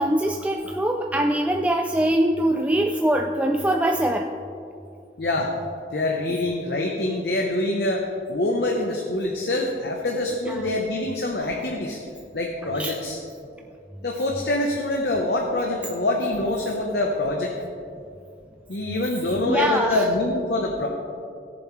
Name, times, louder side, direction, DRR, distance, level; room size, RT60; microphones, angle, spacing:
voice 1, 0.0-4.3 10.5-10.7 12.8-13.0 19.4-20.1, right 1 dB, 10° right, 2 dB, 0.3 m, -23 dB
voice 2, 5.2-5.5 5.9-12.0 12.3-13.2 14.0-17.5 18.7-20.9, left 2 dB, 70° left, 0 dB, 0.9 m, -25 dB
17.0 x 7.2 x 3.2 m, 2.5 s
head